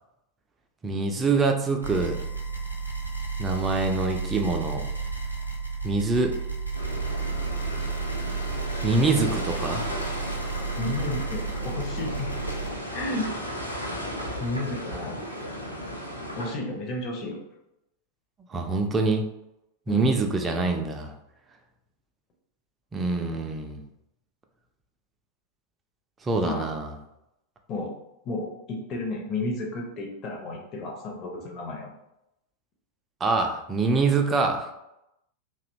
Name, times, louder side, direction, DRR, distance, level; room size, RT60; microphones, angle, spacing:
voice 1, 0.8-2.2 3.4-4.9 5.8-6.3 8.8-9.8 10.5-10.6 18.5-19.3 19.9-21.1 22.9-23.8 26.2-26.9 33.2-34.7, right 3 dB, 20° right, 4 dB, 0.4 m, -25 dB
sound 1, 1.8-12.7, right 4 dB, 90° right, 0.4 m, -32 dB
sound 2, 6.7-16.5, equal, 90° left, 0.4 m, -35 dB
voice 2, 10.8-12.3 12.9-13.3 14.4-15.3 16.4-17.4 19.9-20.2 26.4-26.7 27.7-27.9 28.2-31.9, left 2 dB, 35° left, 0 dB, 0.5 m, -32 dB
2.7 x 2.0 x 2.5 m, 0.86 s
figure-of-eight pair, 90°, 0 cm